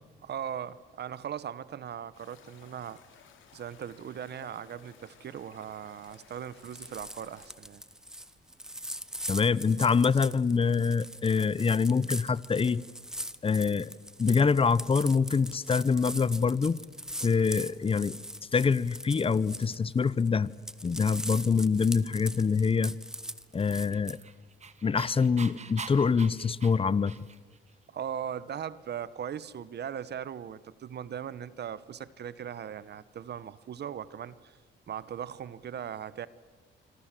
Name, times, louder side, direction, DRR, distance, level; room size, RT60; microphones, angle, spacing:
voice 1, 0.2-3.0 3.5-7.8 17.6-17.8 27.9-34.6 34.9-36.3, right 9 dB, 55° right, 17 dB, 1.1 m, -39 dB
sound 1, 2.1-7.6, left 7 dB, 75° left, 3.5 m, -57 dB
sound 2, 6.0-6.3 6.6-20.3 20.5-24.2, equal, 5° right, 1.0 m, -41 dB
voice 2, 9.3-12.8 13.4-13.9 14.2-16.8 17.2-18.2 18.5-20.5 20.8-23.0 23.5-24.2 24.8-27.2, left 5 dB, 30° left, 20 dB, 0.8 m, -25 dB
Dog, 23.7-27.6, right 5 dB, 35° right, 1.6 m, -44 dB
26.0 x 26.0 x 7.6 m, 1.5 s
cardioid pair, 90°, 20 cm